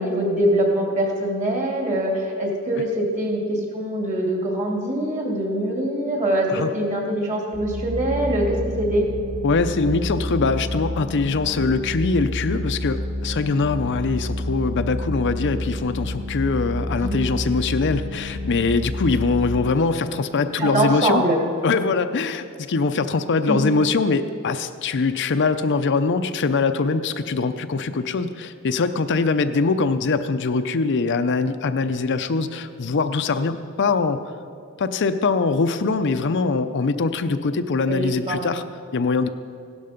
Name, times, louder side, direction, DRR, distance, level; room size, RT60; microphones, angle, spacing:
voice 1, 0.0-6.5 6.7-9.1 17.0-17.2 20.6-21.4 23.5-23.7 37.9-38.4, right 1 dB, 35° right, 0 dB, 2.7 m, -23 dB
sound 1, 7.5-19.6, left 1 dB, 65° right, 3.5 m, -29 dB
voice 2, 9.4-21.2 21.6-34.3 34.8-38.6 38.9-39.3, left 4 dB, 55° left, 9 dB, 0.6 m, -22 dB
16.5 x 12.5 x 5.2 m, 2.5 s
head